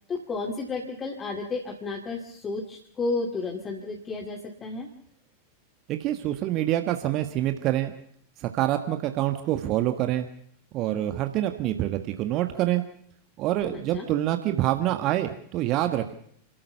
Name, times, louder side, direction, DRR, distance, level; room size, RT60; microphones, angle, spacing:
voice 1, 0.1-4.9 13.7-14.1, left 3 dB, 20° left, 1 dB, 2.3 m, -32 dB
voice 2, 5.9-7.9 8.4-10.3 10.7-12.8 13.4-16.1, right 13 dB, 40° right, 7 dB, 1.5 m, -26 dB
29.0 x 13.5 x 6.9 m, 0.65 s
figure-of-eight pair, 90°, 0 cm